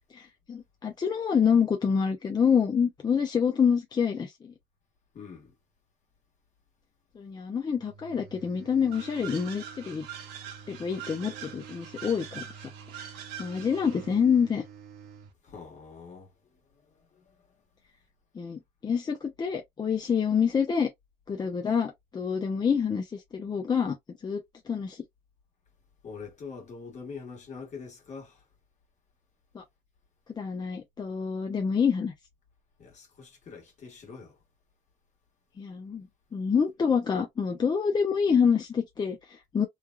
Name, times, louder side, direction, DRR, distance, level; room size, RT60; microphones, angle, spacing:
voice 1, 0.1-4.5 7.2-10.1 10.7-12.5 13.4-14.6 18.3-20.9 21.3-24.0 24.2-25.0 29.5-29.6 30.4-32.1 35.6-39.7, left 6 dB, 25° left, 0.5 m, -27 dB
voice 2, 5.1-5.5 15.4-16.3 17.2-17.3 26.0-28.4 32.8-34.4, left 5 dB, 45° left, 1.4 m, -44 dB
sound 1, 7.7-15.3, right 7 dB, 65° right, 0.9 m, -49 dB
sound 2, 8.9-14.1, right 8 dB, 90° right, 0.9 m, -44 dB
3.2 x 2.2 x 2.2 m
cardioid pair, 110°, 17 cm